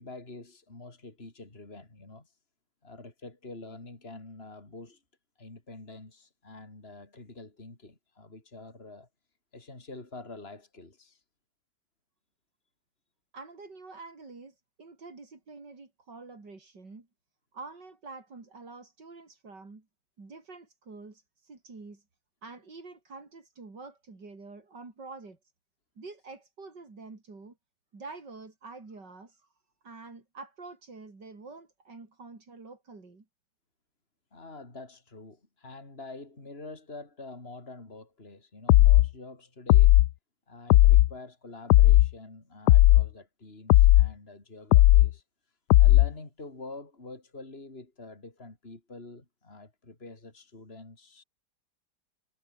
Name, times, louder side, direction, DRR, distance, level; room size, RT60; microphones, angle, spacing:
voice 1, 0.0-2.3 2.8-5.0 5.4-9.1 9.5-11.2 34.3-40.0 40.5-45.2 45.7-51.2, left 2 dB, 35° left, 4.2 m, -46 dB
voice 2, 13.3-17.1 17.5-19.9 20.2-22.0 22.4-25.4 26.0-27.6 27.9-29.5 29.8-33.2, right 3 dB, 85° right, 4.9 m, -47 dB
sound 1, 38.7-39.1 39.7-40.1 40.7-41.1 41.7-42.1 42.7-43.1 43.7-44.1 44.7-45.1 45.7-46.1, left 16 dB, 75° left, 1.1 m, -16 dB
omnidirectional pair, 1.8 m